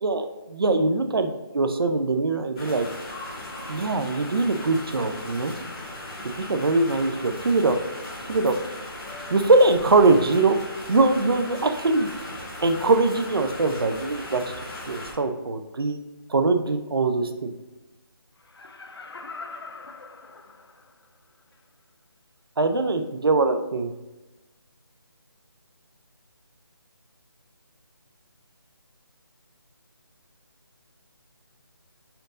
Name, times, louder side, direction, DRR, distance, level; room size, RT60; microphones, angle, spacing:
voice 1, 0.0-2.9 3.7-5.5 6.4-7.8 8.3-8.6 9.3-10.6 10.9-12.1 12.6-14.4 14.9-16.0 16.3-17.5 22.6-23.9, right 3 dB, 70° right, 8 dB, 0.5 m, -22 dB
sound 1, 2.5-15.1, left 1 dB, 15° left, 0.8 m, -38 dB
Laughter, 18.4-21.1 21.5-21.6, left 4 dB, 90° left, 0.6 m, -42 dB
4.4 x 2.6 x 3.9 m, 1.0 s
figure-of-eight pair, 175°, 13 cm